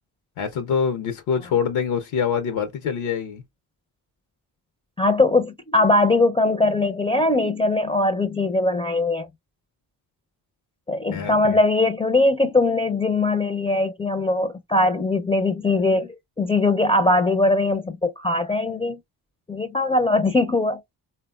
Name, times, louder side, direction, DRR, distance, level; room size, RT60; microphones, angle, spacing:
voice 1, 0.4-3.4 11.1-11.6, left 6 dB, 75° left, 0.7 m, -25 dB
voice 2, 5.0-9.3 10.9-19.0 19.5-20.8, left 2 dB, 10° left, 0.4 m, -21 dB
3.5 x 2.2 x 2.2 m
supercardioid pair, 40°, 49 cm